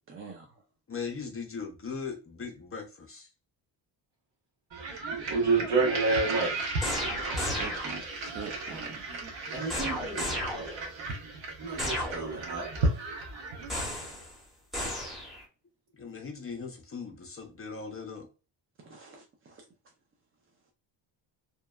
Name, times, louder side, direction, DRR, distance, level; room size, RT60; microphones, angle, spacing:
voice 1, 0.1-0.6 7.6-9.1 18.8-19.6, right 4 dB, 30° right, 0.4 m, -44 dB
voice 2, 0.9-3.3 15.9-18.3, left 5 dB, 30° left, 0.5 m, -39 dB
sound 1, 4.7-14.0, right 2 dB, 75° right, 0.9 m, -35 dB
voice 3, 5.3-6.6 9.5-10.7 11.6-12.7, right 3 dB, 60° right, 1.3 m, -29 dB
sound 2, 6.8-8.2 9.7-11.0 11.8-12.6 13.7-14.3 14.7-15.4, left 1 dB, ahead, 0.9 m, -34 dB
2.8 x 2.1 x 2.2 m
cardioid pair, 105°, 47 cm